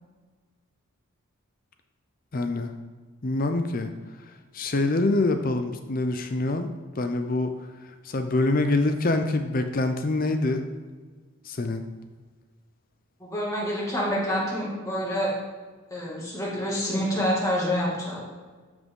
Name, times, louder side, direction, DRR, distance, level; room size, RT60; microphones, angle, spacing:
voice 1, 2.3-2.7 3.2-3.9 4.5-6.7 7.0-7.5 8.1-10.6 11.5-11.8, left 2 dB, 40° left, 7 dB, 0.6 m, -25 dB
voice 2, 13.2-15.3 15.9-18.2, equal, 15° left, -5 dB, 2.2 m, -27 dB
12.0 x 6.2 x 3.8 m, 1.4 s
head